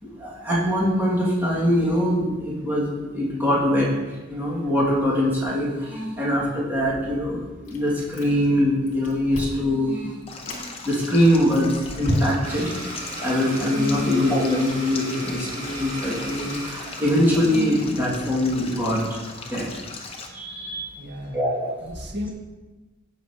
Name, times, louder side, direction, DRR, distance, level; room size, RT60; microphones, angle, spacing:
voice 1, 0.0-3.9 4.3-10.3 10.8-12.7 13.2-19.8 20.3-20.9 21.3-21.7, left 1 dB, 10° right, -7 dB, 2.3 m, -23 dB
Chewing mastication, 7.6-8.6 8.9-9.7 10.2-10.6 11.2-12.7, equal, 60° left, 2.4 m, -31 dB
Stream, 10.3-20.3, left 3 dB, 30° left, 0.9 m, -39 dB
Domestic sounds home sounds, 12.4-17.4, right 1 dB, 35° right, 2.8 m, -36 dB
voice 2, 14.0-14.3 21.0-21.5 21.8-22.3, left 1 dB, 50° right, -2 dB, 1.7 m, -35 dB
16.0 x 5.9 x 3.0 m, 1.2 s
head